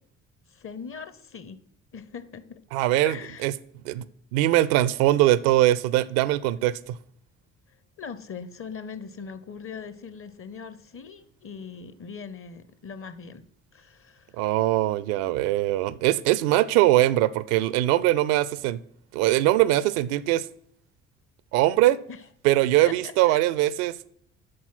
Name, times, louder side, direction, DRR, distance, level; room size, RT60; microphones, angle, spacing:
voice 1, 0.5-1.6 1.9-2.6 3.0-3.5 8.0-13.5 13.7-14.4 22.1-22.3 22.8-23.4, left 6 dB, 35° left, 0.8 m, -40 dB
voice 2, 2.7-3.5 3.8-4.1 4.3-7.0 14.4-18.8 19.1-20.5 21.5-22.0 22.4-24.1, right 15 dB, 60° right, 0.5 m, -22 dB
13.0 x 4.3 x 5.8 m
figure-of-eight pair, 45°, 38 cm